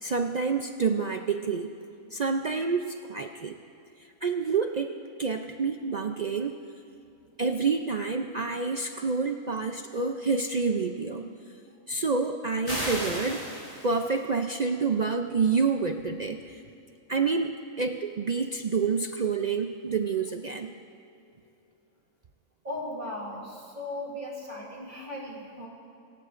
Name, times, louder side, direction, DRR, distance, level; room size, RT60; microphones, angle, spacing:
voice 1, 0.0-1.7 2.1-3.6 4.2-4.9 5.2-6.6 7.4-11.3 11.9-13.4 13.8-16.6 17.1-17.5 17.8-20.7, right 4 dB, 65° right, 5 dB, 0.4 m, -28 dB
sound 1, 12.7-14.3, equal, 25° left, 4.2 m, -34 dB
voice 2, 22.6-25.7, left 1 dB, 35° right, -2 dB, 3.3 m, -37 dB
23.0 x 18.5 x 2.5 m, 2.7 s
omnidirectional pair, 1.4 m